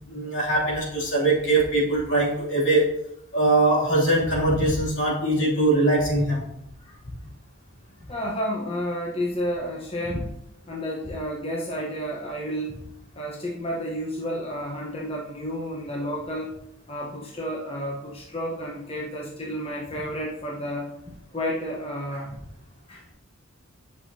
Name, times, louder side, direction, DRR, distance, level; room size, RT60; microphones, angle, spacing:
voice 1, 0.1-2.9 3.3-6.5, right 2 dB, 65° left, -5 dB, 2.8 m, -22 dB
voice 2, 8.1-10.3 10.6-12.7 13.1-16.5 16.9-20.9 21.3-22.3 22.9-23.0, equal, 30° left, -4 dB, 1.0 m, -31 dB
8.7 x 6.4 x 2.8 m, 0.80 s
head